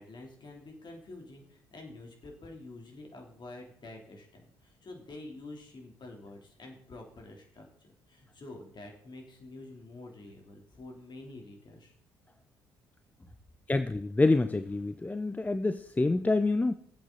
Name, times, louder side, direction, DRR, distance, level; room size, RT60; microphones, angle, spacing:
voice 1, 0.0-7.7 8.1-11.9, left 2 dB, 40° left, 2 dB, 3.3 m, -48 dB
voice 2, 13.7-16.7, left 2 dB, 15° left, 11 dB, 0.5 m, -27 dB
21.0 x 8.1 x 4.0 m, 0.69 s
figure-of-eight pair, 50°, 12 cm